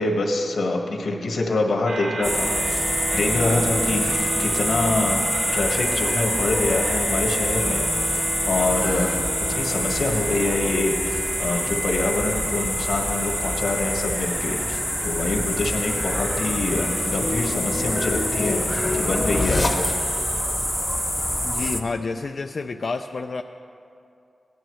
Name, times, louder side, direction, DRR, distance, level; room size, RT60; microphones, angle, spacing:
voice 1, 0.0-7.8 8.1-9.1 9.5-19.9, left 2 dB, 90° left, 1 dB, 1.6 m, -25 dB
sound 1, 1.9-20.4, right 3 dB, 85° right, 0.7 m, -34 dB
sound 2, 2.2-21.8, left 1 dB, ahead, 0.7 m, -26 dB
sound 3, 15.9-20.3, left 2 dB, 35° left, 0.9 m, -29 dB
voice 2, 21.4-23.4, left 4 dB, 55° left, 5 dB, 0.3 m, -29 dB
17.5 x 11.5 x 3.2 m, 2.5 s
wide cardioid pair, 120°, 0 cm